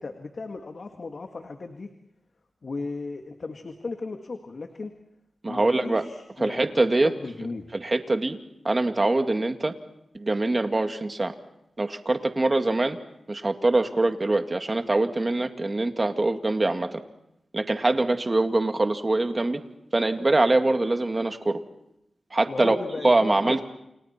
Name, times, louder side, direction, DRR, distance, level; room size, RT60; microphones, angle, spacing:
voice 1, 0.0-1.9 2.6-4.9 5.5-7.7 22.5-23.6, left 3 dB, 60° left, 5 dB, 1.9 m, -36 dB
voice 2, 5.4-6.1 6.4-7.1 7.7-8.4 8.6-9.7 10.1-11.3 11.8-13.0 13.3-17.0 17.5-19.6 19.9-21.6 22.3-22.7 23.0-23.6, right 2 dB, 35° right, 6 dB, 2.2 m, -23 dB
29.5 x 29.0 x 4.5 m, 0.82 s
cardioid pair, 65°, 0 cm